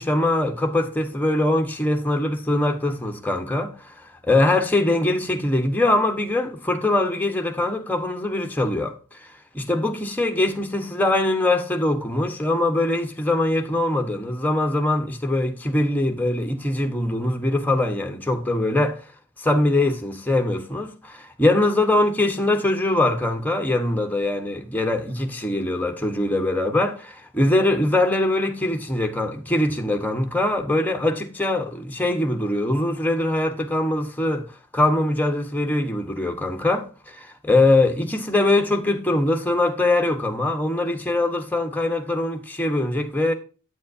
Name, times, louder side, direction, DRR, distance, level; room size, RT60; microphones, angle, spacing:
voice 1, 0.0-3.9 4.2-8.9 9.5-19.0 19.4-43.3, left 2 dB, 10° left, 1.1 m, -22 dB
9.0 x 7.4 x 2.7 m
head